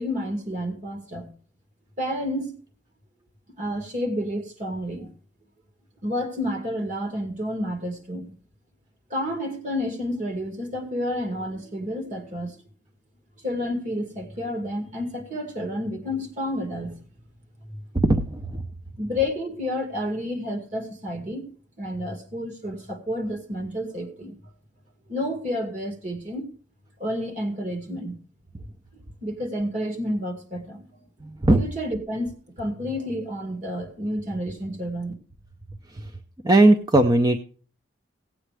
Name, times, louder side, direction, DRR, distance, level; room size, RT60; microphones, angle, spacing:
voice 1, 0.0-1.3 2.0-2.6 3.6-5.1 6.0-8.3 9.1-12.6 13.4-17.0 17.7-17.8 19.0-21.5 21.8-24.3 25.1-26.5 27.0-28.2 29.2-30.9 31.6-35.1, left 1 dB, 45° right, 2.1 m, -30 dB
voice 2, 36.4-37.4, right 2 dB, 20° right, 0.6 m, -16 dB
16.5 x 8.6 x 3.3 m
head